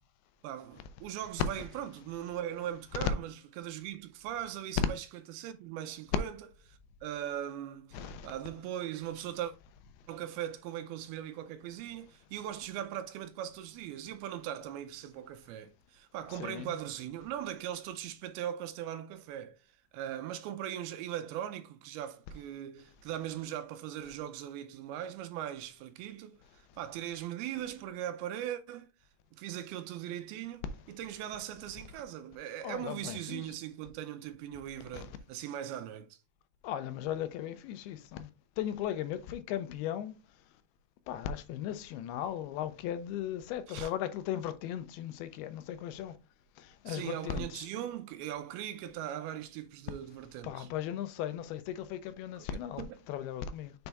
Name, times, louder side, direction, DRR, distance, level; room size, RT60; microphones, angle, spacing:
voice 1, 0.4-5.1 5.3-6.4 6.7-9.5 10.1-19.6 19.9-28.9 29.3-36.2 43.7-43.9 46.9-50.7 52.4-52.5 52.8-53.0, right 11 dB, 85° right, 2.6 m, -40 dB
voice 2, 7.9-8.3 16.3-16.8 32.6-33.5 34.9-35.1 36.6-38.3 38.6-40.1 41.1-46.1 46.6-47.7 48.9-49.0 50.4-53.7, left 10 dB, 90° left, 2.7 m, -37 dB
6.7 x 3.5 x 4.0 m
omnidirectional pair, 4.4 m